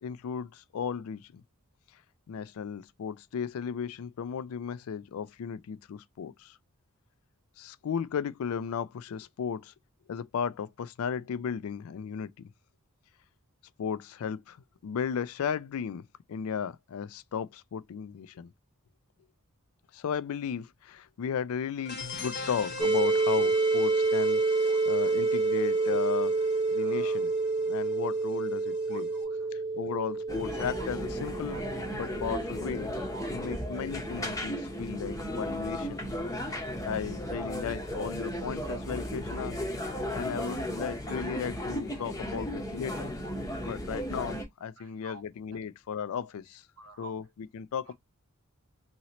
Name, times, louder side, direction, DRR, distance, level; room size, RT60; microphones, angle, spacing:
voice 1, 0.0-1.4 2.3-6.6 7.6-9.7 10.1-12.5 13.8-14.6 14.8-16.0 16.3-18.5 19.9-24.4 24.8-26.4 26.7-27.3 27.7-29.1 29.7-31.6 31.9-32.9 33.3-36.0 36.8-39.6 40.1-43.1 43.6-46.6 47.0-47.9, left 7 dB, 75° left, 0.3 m, -35 dB
sound 1, 21.8-29.2, left 3 dB, 50° left, 0.9 m, -43 dB
sound 2, 22.8-34.5, right 3 dB, 20° right, 0.4 m, -29 dB
voice 2, 24.7-25.1 26.8-27.2 28.9-29.5 30.8-30.9 31.5-31.6 33.1-33.6 35.0-35.2 36.3-36.6 37.8-37.9 39.3-39.4 40.2-40.4 41.1-41.8 42.3-42.4 42.9-43.3 43.7-43.8 44.8-45.2 46.8-47.2 47.9-48.0, right 4 dB, 65° right, 0.9 m, -50 dB
sound 3, 30.3-44.4, equal, 15° left, 0.7 m, -35 dB
3.0 x 2.8 x 2.8 m
head